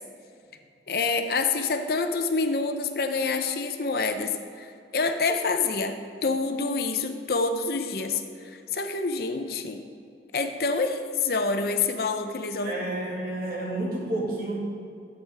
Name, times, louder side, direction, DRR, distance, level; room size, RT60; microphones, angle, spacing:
voice 1, 0.9-4.3 4.6-6.0 6.2-9.8 10.3-12.8, left 4 dB, 55° left, 6 dB, 0.6 m, -27 dB
voice 2, 12.6-14.6, right 1 dB, 55° right, -4 dB, 2.2 m, -30 dB
11.5 x 8.0 x 3.4 m, 2.4 s
head